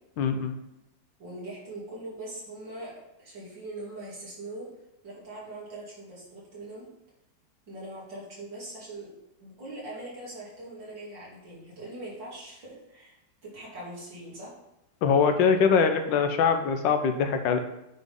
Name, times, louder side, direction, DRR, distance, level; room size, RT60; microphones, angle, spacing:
voice 1, 0.2-0.6 15.0-17.6, left 6 dB, 90° left, 7 dB, 1.4 m, -23 dB
voice 2, 1.2-2.9 3.2-4.7 5.0-6.9 7.7-9.1 9.4-13.2 13.4-14.5, right 1 dB, 75° right, -7 dB, 3.5 m, -41 dB
9.2 x 3.8 x 3.6 m, 0.86 s
omnidirectional pair, 2.0 m